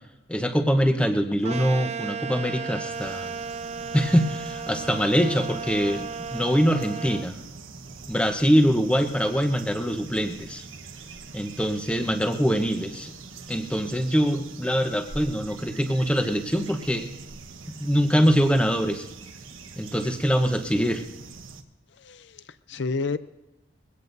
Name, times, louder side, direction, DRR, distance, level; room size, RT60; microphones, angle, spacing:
voice 1, 0.3-3.3 3.9-7.4 8.1-10.6 11.3-13.1 13.5-17.1 17.7-19.1 19.8-21.0, equal, 5° left, 6 dB, 1.0 m, -23 dB
sound 1, 1.4-7.3, right 5 dB, 30° right, 0.5 m, -34 dB
sound 2, 2.9-21.6, right 4 dB, 80° right, 1.2 m, -44 dB
voice 2, 22.0-23.2, left 4 dB, 60° left, 13 dB, 0.5 m, -30 dB
22.5 x 16.5 x 2.7 m, 1.0 s
head